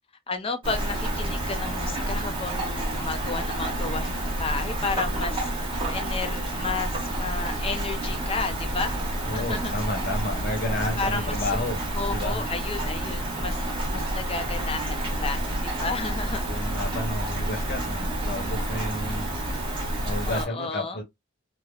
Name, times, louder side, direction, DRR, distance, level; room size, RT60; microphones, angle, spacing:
voice 1, 0.3-5.5 5.8-9.0 9.3-9.7 11.0-11.5 11.9-16.4 20.3-21.0, left 4 dB, 30° left, 0.5 m, -32 dB
Rain, 0.6-20.5, right 1 dB, 25° right, 0.9 m, -29 dB
voice 2, 9.2-11.8 12.1-12.4 16.5-19.3 20.0-21.0, left 1 dB, 50° left, 1.0 m, -31 dB
3.2 x 2.1 x 2.3 m
head